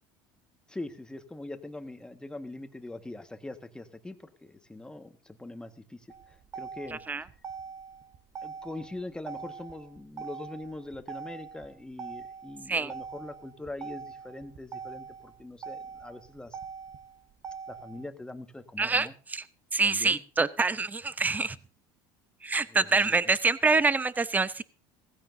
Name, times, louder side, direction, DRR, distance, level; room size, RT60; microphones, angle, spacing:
voice 1, 0.7-6.0 6.5-7.0 8.4-16.6 17.7-19.1 19.8-20.2 22.7-23.1, left 2 dB, 10° left, 8 dB, 1.6 m, -42 dB
Motor vehicle (road), 6.1-18.1, right 6 dB, 40° right, 1.2 m, -43 dB
voice 2, 18.8-19.5 19.7-21.6 22.4-24.6, right 4 dB, 15° right, 16 dB, 0.8 m, -26 dB
16.5 x 15.0 x 2.7 m, 0.35 s
supercardioid pair, 90°, 10 cm